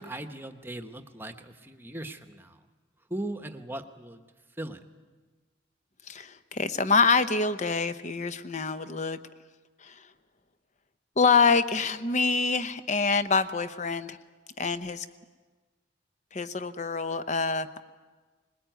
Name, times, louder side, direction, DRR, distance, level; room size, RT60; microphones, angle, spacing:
voice 1, 0.0-2.6 3.1-4.3 4.6-4.8, right 1 dB, 10° right, 7 dB, 1.1 m, -38 dB
voice 2, 6.1-9.2 9.8-10.1 11.2-14.2 14.6-15.1 16.3-17.8, left 4 dB, 40° left, 11 dB, 0.8 m, -26 dB
21.0 x 21.0 x 9.2 m, 1.4 s
head